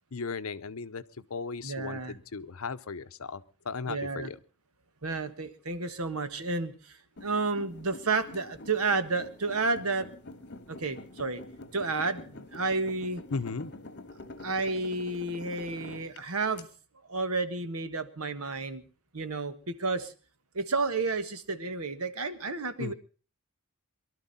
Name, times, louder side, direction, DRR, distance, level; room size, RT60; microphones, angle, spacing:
voice 1, 0.1-4.4 13.3-13.7 22.8-22.9, left 4 dB, 70° left, 13 dB, 0.7 m, -36 dB
voice 2, 1.6-2.2 3.9-4.3 5.0-6.9 7.2-10.1 10.7-11.4 11.7-13.2 14.4-16.7 17.1-18.8 19.1-20.1 20.5-22.9, right 3 dB, 80° right, 10 dB, 1.4 m, -31 dB
sound 1, 7.2-16.6, left 2 dB, 55° left, 1.5 m, -46 dB
23.0 x 12.5 x 4.1 m, 0.36 s
head